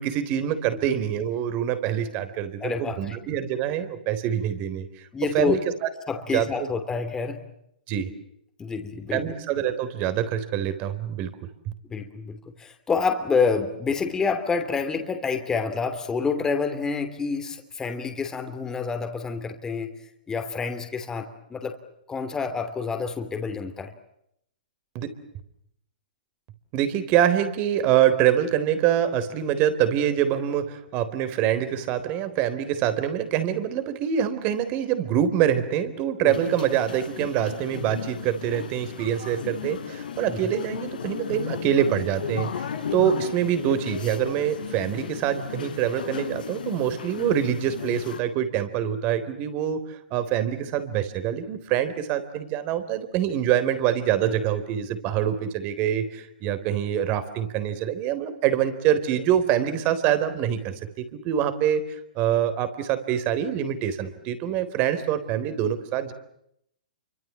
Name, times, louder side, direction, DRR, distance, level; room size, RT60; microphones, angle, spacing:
voice 1, 0.0-5.1 5.3-5.9 6.3-6.7 7.9-8.1 9.1-11.3 24.9-25.1 26.7-61.8 62.2-66.1, right 10 dB, 35° right, 11 dB, 3.8 m, -25 dB
voice 2, 2.6-3.2 5.1-5.6 6.1-7.4 8.6-9.3 11.8-19.9 20.3-21.8 22.1-23.9 36.2-36.4 40.3-40.5, left 5 dB, 10° left, 6 dB, 2.9 m, -28 dB
sound 1, 36.3-48.2, left 7 dB, 80° left, 3.8 m, -35 dB
29.0 x 25.0 x 7.3 m, 0.75 s
hypercardioid pair, 140°, 5 cm